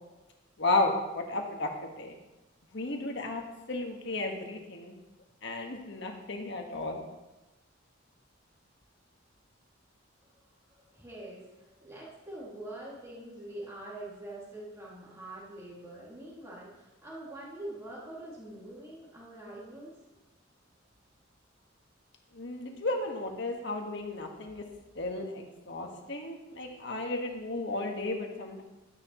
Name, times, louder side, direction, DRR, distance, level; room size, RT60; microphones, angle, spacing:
voice 1, 0.6-2.2 2.7-3.4 3.7-5.0 5.4-7.0 22.3-24.6 24.9-28.6, left 2 dB, 60° left, 2 dB, 1.6 m, -33 dB
voice 2, 10.3-19.9, right 1 dB, 15° right, -7 dB, 2.3 m, -44 dB
12.5 x 10.5 x 3.1 m, 1.0 s
head